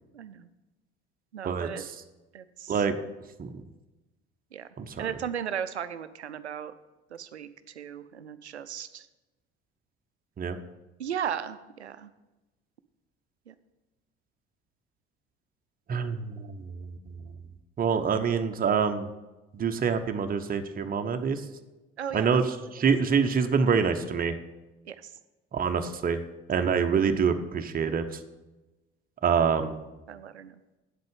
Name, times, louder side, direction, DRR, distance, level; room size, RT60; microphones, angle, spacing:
voice 1, 0.1-0.5 1.3-1.9 2.3-2.8 4.5-4.7 5.0-6.7 7.1-9.1 11.0-12.1 13.5-13.6 22.0-22.7 24.8-25.1 26.5-26.7 30.1-30.6, right 8 dB, 85° right, 13 dB, 0.5 m, -36 dB
voice 2, 1.4-1.9 2.7-3.0 3.4-3.5 4.8-5.1 10.4-10.6 15.9-17.3 17.8-19.1 19.5-21.4 22.1-24.3 25.5-26.2 26.5-28.2 29.2-29.8, right 6 dB, 25° right, 7 dB, 0.9 m, -26 dB
8.4 x 7.8 x 5.3 m, 1.1 s
figure-of-eight pair, 55°, 33 cm